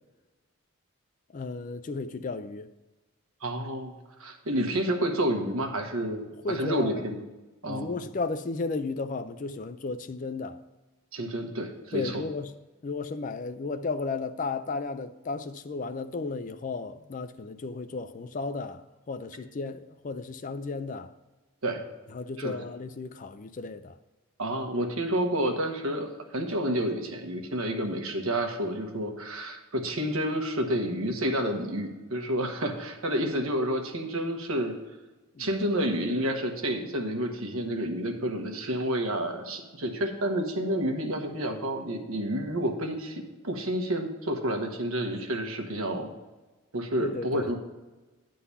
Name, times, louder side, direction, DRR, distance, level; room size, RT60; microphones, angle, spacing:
voice 1, 1.3-2.7 6.4-7.1 7.6-10.6 11.9-12.5 12.8-21.1 22.1-24.0 35.4-35.6 47.0-47.5, left 3 dB, 35° left, 0.3 m, -34 dB
voice 2, 3.4-3.9 4.2-7.2 7.6-7.9 11.1-12.2 21.6-21.8 22.4-22.6 24.4-34.7 35.4-46.1 46.7-47.6, right 1 dB, 75° right, 1.2 m, -29 dB
9.7 x 3.9 x 6.8 m
head